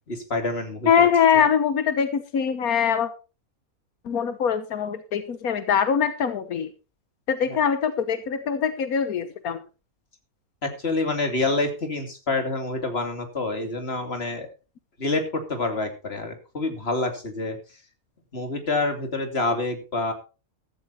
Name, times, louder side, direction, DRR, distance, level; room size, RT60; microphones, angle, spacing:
voice 1, 0.1-1.1 7.5-7.6 10.6-14.5 15.0-17.8 18.3-20.1, left 2 dB, 45° left, 6 dB, 3.1 m, -27 dB
voice 2, 0.9-3.1 4.0-6.7 7.3-9.6, left 7 dB, 85° left, 11 dB, 1.6 m, -22 dB
15.0 x 14.0 x 2.8 m, 0.33 s
omnidirectional pair, 1.5 m